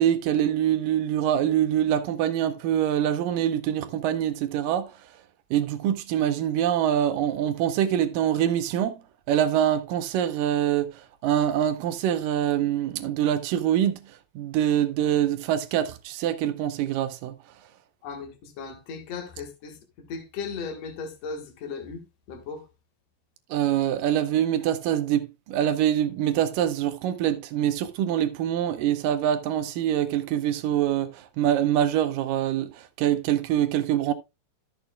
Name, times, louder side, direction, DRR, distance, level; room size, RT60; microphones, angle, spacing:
voice 1, 0.0-5.0 5.5-9.0 9.3-17.4 23.5-34.1, right 10 dB, 75° right, 2.2 m, -25 dB
voice 2, 18.0-22.0 22.3-22.7, left 5 dB, 55° left, 2.3 m, -37 dB
13.0 x 7.0 x 2.3 m
omnidirectional pair, 4.3 m